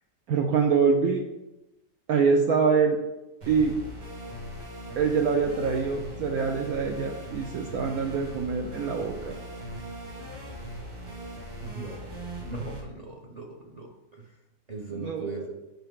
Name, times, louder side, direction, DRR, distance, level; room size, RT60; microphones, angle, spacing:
voice 1, 0.3-1.2 2.1-3.0 3.5-3.8 5.0-9.4 14.9-15.4, right 5 dB, 65° right, 3 dB, 1.1 m, -25 dB
sound 1, 3.4-12.8, equal, 85° right, 2.7 m, -39 dB
voice 2, 11.6-12.1 12.4-14.3 14.7-15.5, right 3 dB, 35° right, 1 dB, 0.6 m, -39 dB
9.3 x 5.8 x 3.7 m, 1.0 s
omnidirectional pair, 1.8 m